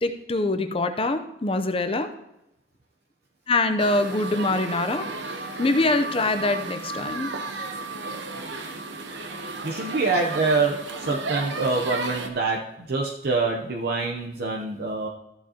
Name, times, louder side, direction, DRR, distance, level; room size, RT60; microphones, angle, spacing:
voice 1, 0.0-2.1 3.5-7.3, left 2 dB, 30° left, 8 dB, 0.6 m, -24 dB
sound 1, 3.8-12.3, right 3 dB, 70° right, 1.0 m, -34 dB
voice 2, 9.6-15.1, right 3 dB, 55° right, 0 dB, 0.7 m, -25 dB
13.5 x 7.4 x 2.9 m, 0.88 s
head